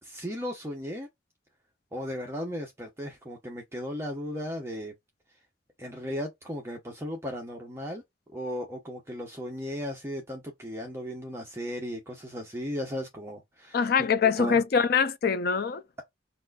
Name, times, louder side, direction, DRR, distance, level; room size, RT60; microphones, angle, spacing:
voice 1, 0.0-1.1 1.9-4.9 5.8-8.0 8.3-14.6, equal, 15° right, 0.7 m, -36 dB
voice 2, 13.7-15.8, left 6 dB, 60° left, 0.5 m, -24 dB
5.9 x 2.5 x 2.3 m
head